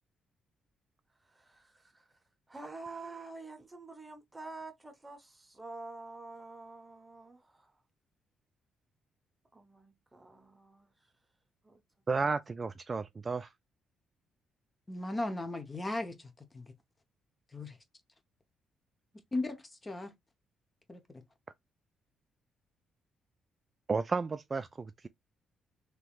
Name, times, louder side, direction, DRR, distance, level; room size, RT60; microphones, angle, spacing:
voice 1, 1.2-2.2 2.5-7.7 9.5-11.1 11.6-11.8, right 3 dB, 15° right, 0.8 m, -48 dB
voice 2, 12.1-13.5 23.9-25.1, right 4 dB, 30° right, 0.3 m, -33 dB
voice 3, 14.9-16.7 17.5-17.8 19.3-20.1 20.9-21.2, left 2 dB, 25° left, 0.8 m, -37 dB
3.5 x 2.9 x 2.3 m
cardioid pair, 90°, 0 cm